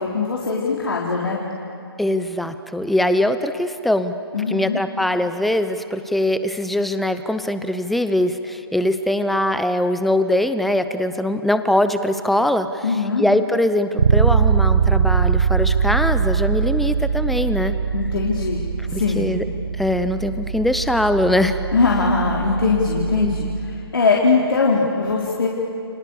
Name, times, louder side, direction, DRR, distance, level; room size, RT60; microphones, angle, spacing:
voice 1, 0.0-1.4 4.3-4.8 12.8-13.2 17.9-19.2 21.7-25.5, left 4 dB, 60° left, -3 dB, 4.0 m, -21 dB
voice 2, 2.0-4.1 4.5-12.8 13.2-17.7 18.9-19.4 19.8-21.6 23.2-23.4, left 1 dB, ahead, 10 dB, 0.8 m, -21 dB
Bass guitar, 14.0-23.8, right 6 dB, 65° right, 1.5 m, -22 dB
30.0 x 28.5 x 6.9 m, 2.6 s
figure-of-eight pair, 135°, 13 cm